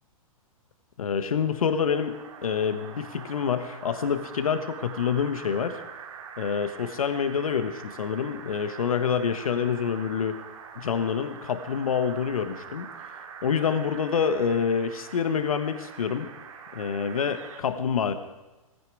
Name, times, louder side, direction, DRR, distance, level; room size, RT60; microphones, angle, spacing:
voice 1, 1.0-5.8 6.4-10.4 10.8-12.9 13.4-16.3 16.7-18.1, left 7 dB, 75° left, 10 dB, 1.3 m, -27 dB
sound 1, 1.3-17.6, right 7 dB, 60° right, 2.8 m, -44 dB
17.0 x 15.0 x 4.8 m, 1.1 s
hypercardioid pair, 125°, 18 cm